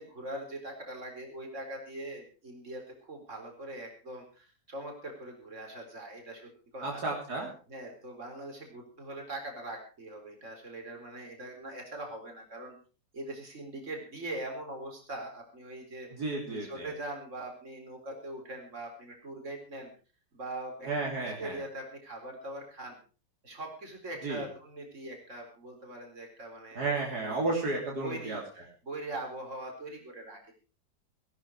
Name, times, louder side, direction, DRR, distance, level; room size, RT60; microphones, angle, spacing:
voice 1, 0.0-7.0 7.7-12.8 13.1-16.1 16.5-19.9 20.3-23.0 23.4-26.9 27.3-27.7 28.0-30.5, right 1 dB, 45° right, 2 dB, 4.5 m, -42 dB
voice 2, 6.8-7.5 16.2-16.9 20.8-21.6 24.2-24.4 26.8-28.4, right 3 dB, 65° right, -2 dB, 3.8 m, -32 dB
18.5 x 12.0 x 4.7 m, 0.36 s
omnidirectional pair, 1.8 m